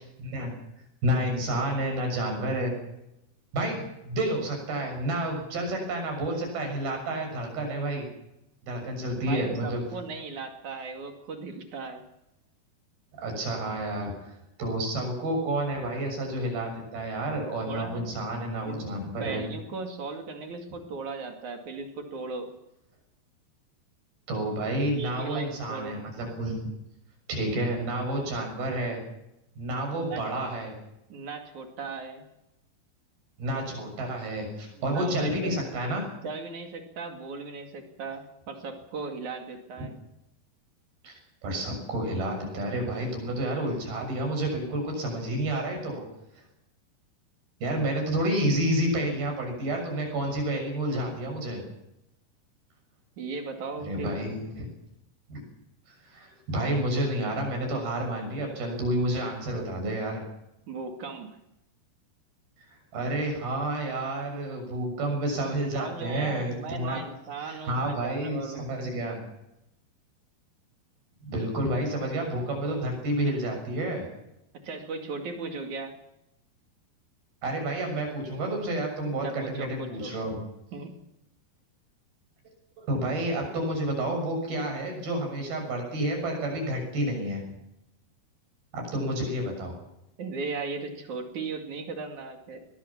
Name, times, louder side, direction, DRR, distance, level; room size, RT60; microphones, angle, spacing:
voice 1, 0.2-0.6 1.0-2.7 3.5-8.1 8.6-9.8 13.1-19.4 24.3-26.6 27.3-29.0 29.6-30.7 33.4-36.0 39.8-39.9 41.0-46.0 47.6-51.6 53.9-54.7 55.3-55.4 55.9-60.2 62.7-67.0 67.5-69.2 71.2-74.1 77.4-80.4 82.8-87.4 88.7-89.7, right 1 dB, 65° right, 3 dB, 8.5 m, -30 dB
voice 2, 9.2-12.0 17.7-18.2 18.6-22.5 24.9-26.0 29.9-30.2 31.1-32.2 34.8-35.6 36.2-40.0 53.2-54.2 60.7-61.4 65.7-68.7 71.7-71.8 74.6-76.0 79.2-80.2 80.7-80.9 88.9-89.3 90.2-92.6, right 4 dB, 50° right, 4 dB, 3.5 m, -37 dB
21.0 x 19.5 x 7.2 m, 0.85 s
omnidirectional pair, 4.6 m